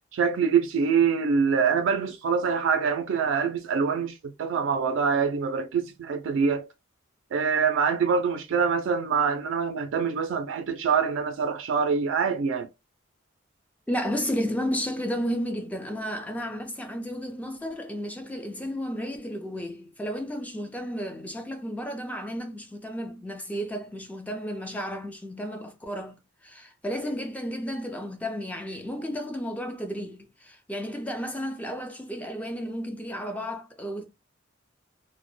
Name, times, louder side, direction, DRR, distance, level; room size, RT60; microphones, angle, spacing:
voice 1, 0.1-6.7 7.3-12.7, right 6 dB, 80° right, 0.3 m, -25 dB
voice 2, 13.9-34.0, equal, 10° left, 0.4 m, -33 dB
2.1 x 2.0 x 3.0 m
head